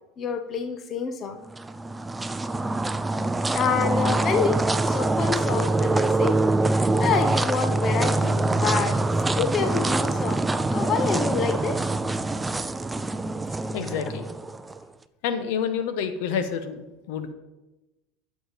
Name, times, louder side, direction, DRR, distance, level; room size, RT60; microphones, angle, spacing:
voice 1, 0.2-1.4 3.5-6.4 6.7-9.0 9.3-11.8, left 6 dB, 35° left, 8 dB, 0.9 m, -28 dB
sound 1, 1.5-14.8, right 2 dB, 10° right, 0.5 m, -24 dB
voice 2, 13.7-14.3 15.2-17.3, left 7 dB, 70° left, 9 dB, 1.2 m, -28 dB
11.5 x 7.1 x 5.2 m, 1.0 s
supercardioid pair, 115°, 0 cm